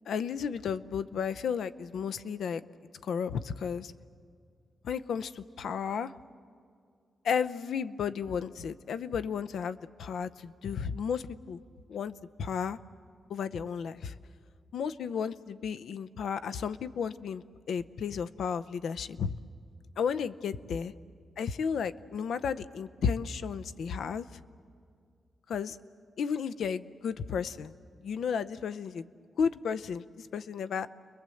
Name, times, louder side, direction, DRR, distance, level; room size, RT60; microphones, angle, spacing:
voice 1, 0.1-2.6 3.0-3.9 4.8-6.1 7.2-11.6 11.9-12.8 13.3-14.1 14.7-19.3 20.0-20.9 21.4-24.3 25.5-25.8 26.2-27.7 28.0-29.0 29.4-30.9, left 6 dB, 80° left, 14 dB, 0.6 m, -33 dB
29.5 x 21.5 x 7.8 m, 2.2 s
wide cardioid pair, 160°, 0 cm